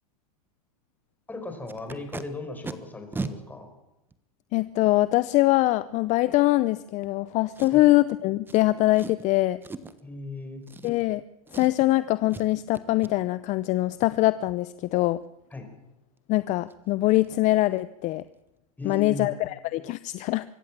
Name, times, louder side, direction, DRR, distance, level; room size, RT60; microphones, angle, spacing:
voice 1, 1.3-3.7 7.7-7.8 10.0-10.6 15.5-15.7 18.8-19.3, left 3 dB, 10° left, 5 dB, 4.9 m, -37 dB
Packing tape duct tape, 1.7-2.2 2.6-2.7 3.1-3.3 4.1-4.2 7.5-8.0 8.5-8.6 8.9-9.2 9.6-10.0 10.6-11.2 11.5-11.9 12.3-12.5 12.7-13.1 16.2-16.3 16.6-16.7 17.1-17.3 17.5-17.8 18.0-18.1, right 3 dB, 10° right, 1.3 m, -37 dB
voice 2, 4.5-9.6 10.8-11.2 11.5-15.2 16.3-18.2 18.8-20.4, left 18 dB, 40° left, 16 dB, 0.7 m, -23 dB
24.5 x 14.5 x 7.5 m, 0.91 s
hypercardioid pair, 120°, 19 cm